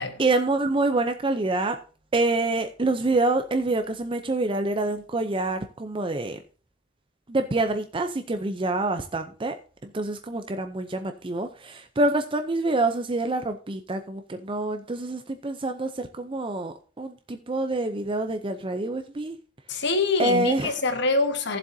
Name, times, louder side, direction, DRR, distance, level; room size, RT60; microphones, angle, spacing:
voice 1, 0.2-1.8 2.1-6.4 7.3-19.4 19.7-19.8 20.2-20.7, right 2 dB, 25° right, 0.5 m, -26 dB
voice 2, 19.7-21.6, left 3 dB, 60° left, 1.2 m, -25 dB
15.5 x 7.4 x 2.7 m
head